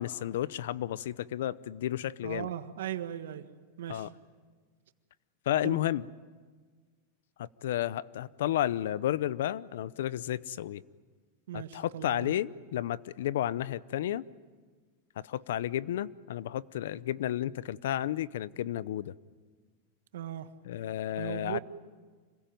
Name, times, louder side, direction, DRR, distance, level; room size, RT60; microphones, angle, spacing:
voice 1, 0.0-2.5 3.9-4.1 5.5-6.1 7.4-10.8 11.5-14.2 15.2-19.1 20.6-21.6, left 12 dB, 75° left, 19 dB, 0.7 m, -32 dB
voice 2, 2.2-3.4 3.8-4.1 5.6-5.8 11.5-12.3 20.1-20.5 21.2-21.6, right 11 dB, 90° right, 10 dB, 1.5 m, -38 dB
26.5 x 21.5 x 9.3 m, 1.5 s
supercardioid pair, 160°, 0 cm